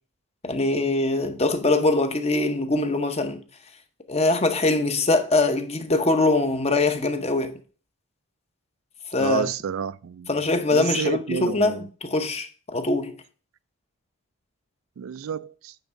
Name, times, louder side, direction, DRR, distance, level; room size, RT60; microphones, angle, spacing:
voice 1, 0.4-3.4 4.1-7.5 9.1-9.4 10.3-13.1, left 2 dB, 30° left, 0.8 m, -23 dB
voice 2, 9.2-10.3 10.7-11.8 15.0-15.7, right 7 dB, 75° right, 0.3 m, -29 dB
8.9 x 3.6 x 5.2 m
head